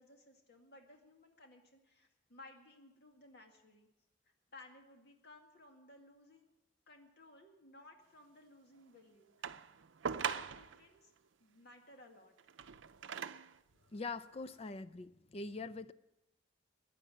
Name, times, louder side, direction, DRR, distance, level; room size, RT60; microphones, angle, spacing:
voice 1, 0.0-3.9 4.5-6.5 6.9-9.5 10.0-11.1 11.4-12.5, left 2 dB, 60° left, 2.1 m, -58 dB
sound 1, 9.4-10.8 12.4-13.6 14.4-14.5, right 7 dB, 80° right, 0.5 m, -41 dB
voice 2, 13.9-15.9, left 3 dB, 30° left, 0.4 m, -43 dB
15.5 x 10.5 x 7.4 m
head